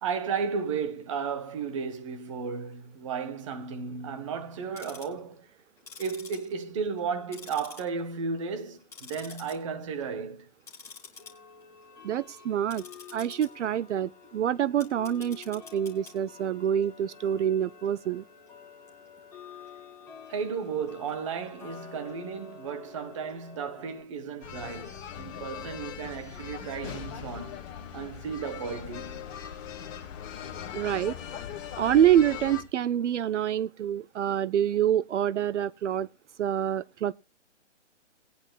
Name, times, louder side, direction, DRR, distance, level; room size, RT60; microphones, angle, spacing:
voice 1, 0.0-5.5 6.0-10.5 20.3-27.7 27.9-29.2, right 6 dB, 25° right, 1.0 m, -34 dB
Tick-tock, 4.6-5.2 5.8-7.1 7.3-8.2 8.5-9.5 9.9-10.2 10.6-24.0, left 5 dB, 5° left, 2.1 m, -48 dB
voice 2, 12.0-12.8 13.1-18.2 30.7-31.2 31.8-36.1 36.4-37.1, right 10 dB, 75° right, 0.5 m, -26 dB
sound 1, 24.4-32.6, left 9 dB, 25° left, 2.1 m, -40 dB
20.0 x 10.0 x 2.3 m
hypercardioid pair, 160°, 36 cm